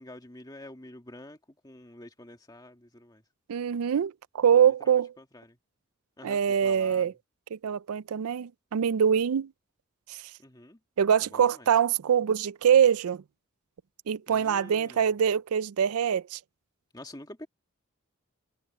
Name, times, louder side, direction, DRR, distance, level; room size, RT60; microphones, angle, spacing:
voice 1, 0.0-3.2 4.6-5.6 6.2-7.2 10.4-10.8 11.2-11.7 14.3-15.0 16.9-17.5, left 1 dB, 20° left, 1.8 m, -48 dB
voice 2, 3.5-5.1 6.2-7.1 7.5-9.5 10.1-10.2 11.0-13.2 14.1-16.4, right 8 dB, 80° right, 0.4 m, -24 dB
head